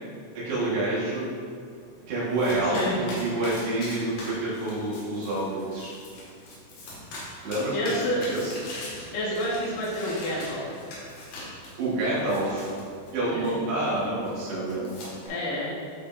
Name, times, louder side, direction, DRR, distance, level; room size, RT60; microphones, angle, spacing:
voice 1, 0.3-1.3 2.1-5.9 7.4-8.5 11.8-12.7 13.1-15.2, right 2 dB, 65° right, -9 dB, 3.3 m, -28 dB
Domestic sounds home sounds, 1.7-15.3, left 1 dB, 75° left, 4.3 m, -42 dB
voice 2, 7.7-8.2 9.1-10.6 13.3-13.6 15.3-15.7, equal, 90° left, -6 dB, 4.4 m, -29 dB
12.5 x 4.9 x 2.6 m, 2.2 s
omnidirectional pair, 5.8 m